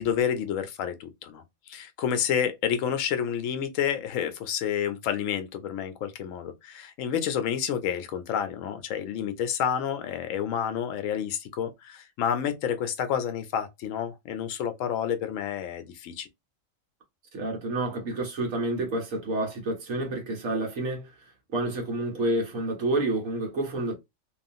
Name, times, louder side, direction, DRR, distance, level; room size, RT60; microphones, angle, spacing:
voice 1, 0.0-16.3, left 8 dB, 75° left, 0.9 m, -29 dB
voice 2, 17.3-24.0, right 2 dB, 75° right, 1.4 m, -29 dB
3.0 x 2.3 x 2.6 m
omnidirectional pair, 1.4 m